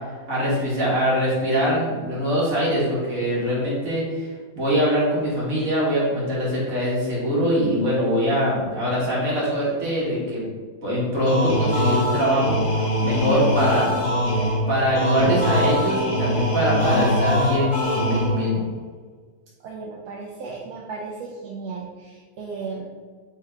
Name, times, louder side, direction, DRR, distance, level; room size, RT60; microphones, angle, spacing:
voice 1, 0.3-4.3 4.6-10.4 10.8-14.0 14.7-18.6, equal, 55° right, -7 dB, 1.9 m, -23 dB
sound 1, 11.3-18.6, left 1 dB, 85° left, 0.4 m, -23 dB
voice 2, 19.6-22.8, right 4 dB, 75° right, -2 dB, 1.0 m, -35 dB
3.4 x 3.3 x 4.3 m, 1.5 s
omnidirectional pair, 1.8 m